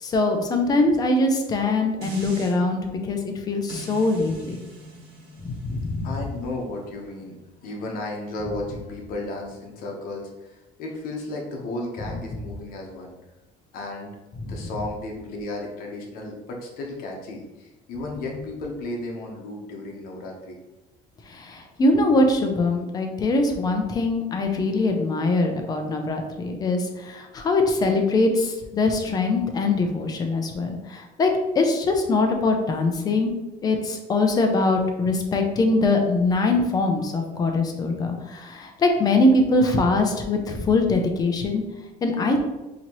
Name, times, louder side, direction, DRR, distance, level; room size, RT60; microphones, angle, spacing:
voice 1, 0.0-4.6 5.4-6.1 14.4-14.6 21.3-31.3 31.6-33.3 33.6-41.6 42.0-42.4, left 2 dB, 25° left, 4 dB, 0.5 m, -22 dB
sound 1, 2.0-2.6 3.7-8.8 9.3-9.4, right 2 dB, 85° right, 1.4 m, -43 dB
voice 2, 6.0-7.3 7.6-13.1 13.7-14.1 14.5-20.6, left 2 dB, 65° left, 0 dB, 1.0 m, -34 dB
4.0 x 2.9 x 3.0 m, 1.0 s
cardioid pair, 160°, 16 cm